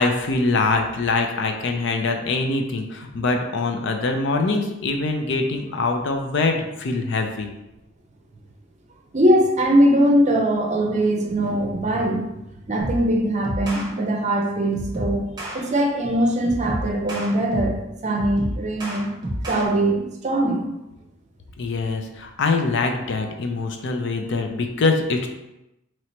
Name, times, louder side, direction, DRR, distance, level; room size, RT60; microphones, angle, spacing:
voice 1, 0.0-7.5 21.6-25.3, left 3 dB, 65° left, 4 dB, 0.5 m, -23 dB
voice 2, 9.1-12.3 12.7-15.2 15.5-19.1 19.5-20.7, right 1 dB, 35° right, 1 dB, 0.7 m, -21 dB
sound 1, 12.8-13.1 13.4-13.9 14.7-15.6 16.4-17.8 18.2-19.7, right 1 dB, 20° right, 1.0 m, -29 dB
3.1 x 2.9 x 4.4 m, 0.92 s
head